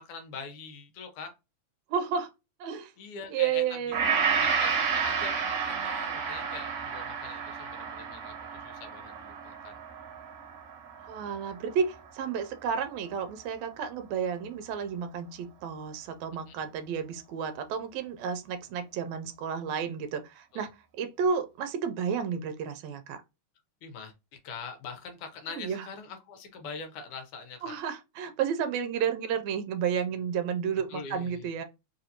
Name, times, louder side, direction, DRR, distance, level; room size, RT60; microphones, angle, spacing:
voice 1, 0.0-1.3 3.0-3.8 4.1-9.8 16.4-16.5 20.5-20.7 23.8-27.8 30.9-31.4, left 5 dB, 85° left, 2.3 m, -43 dB
voice 2, 1.9-2.3 2.6-2.9 3.3-4.0 11.0-20.7 21.0-23.2 25.5-25.9 27.6-31.6, right 7 dB, 80° right, 1.8 m, -31 dB
Gong, 3.9-12.2 12.7-12.8, right 6 dB, 60° right, 1.9 m, -31 dB
4.9 x 2.6 x 2.8 m
omnidirectional pair, 3.4 m